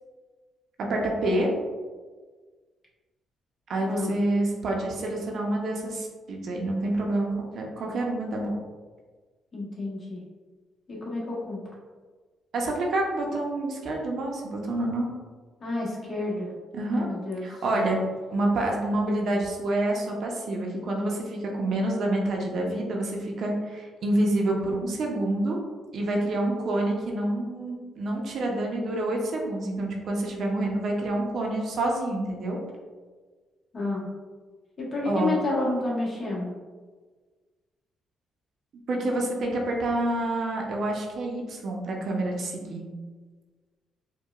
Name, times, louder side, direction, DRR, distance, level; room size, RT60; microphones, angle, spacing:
voice 1, 0.9-1.5 3.7-8.5 12.5-15.1 16.7-17.1 17.4-18.0 18.3-25.6 25.9-32.6 35.0-35.4 38.9-42.9, right 1 dB, 65° right, 0 dB, 0.7 m, -27 dB
voice 2, 9.5-10.2 10.9-11.6 15.6-16.5 16.9-17.5 17.7-17.9 33.7-34.1 34.8-36.5, left 2 dB, 45° left, -5 dB, 1.2 m, -30 dB
4.6 x 2.3 x 2.4 m, 1.4 s
cardioid pair, 90°, 0 cm